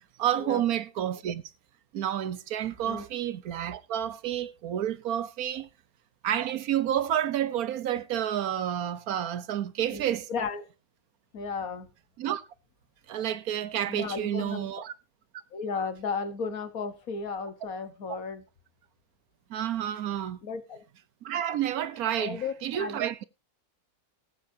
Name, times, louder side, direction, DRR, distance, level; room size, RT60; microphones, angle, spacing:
voice 1, 0.2-1.4 1.9-5.7 6.2-10.3 12.2-12.4 13.1-14.9 19.5-20.4 21.2-23.2, right 11 dB, 70° right, 1.2 m, -30 dB
voice 2, 10.3-10.6 11.3-11.9 13.9-14.7 15.5-18.4 20.4-20.8 22.2-23.0, left 5 dB, 65° left, 1.7 m, -34 dB
19.5 x 8.3 x 2.7 m
omnidirectional pair, 1.6 m